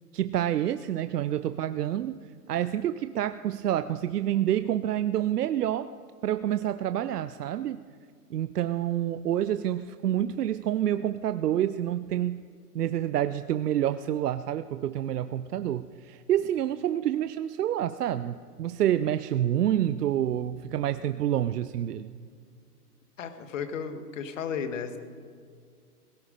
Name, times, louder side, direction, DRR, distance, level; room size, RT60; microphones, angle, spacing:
voice 1, 0.1-5.9 6.2-7.8 8.3-12.4 12.7-22.2, right 11 dB, 80° right, 12 dB, 0.6 m, -28 dB
voice 2, 23.2-25.0, left 6 dB, 55° left, 9 dB, 1.5 m, -34 dB
17.5 x 12.5 x 5.1 m, 2.1 s
hypercardioid pair, 150°, 47 cm